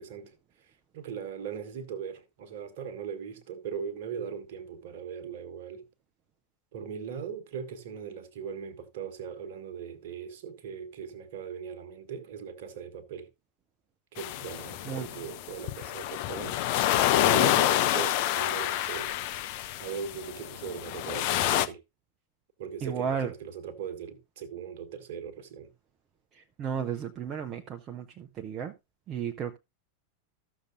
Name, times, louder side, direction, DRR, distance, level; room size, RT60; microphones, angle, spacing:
voice 1, 0.0-5.8 6.7-13.3 14.1-16.6 17.2-19.2 19.8-21.8 22.6-25.7, right 7 dB, 55° right, 1.3 m, -39 dB
sound 1, 14.2-21.7, left 13 dB, 45° left, 0.6 m, -28 dB
voice 2, 22.8-23.3 26.3-28.7 29.1-29.6, right 7 dB, 30° right, 0.6 m, -34 dB
14.0 x 6.6 x 2.5 m
figure-of-eight pair, 90°, 0 cm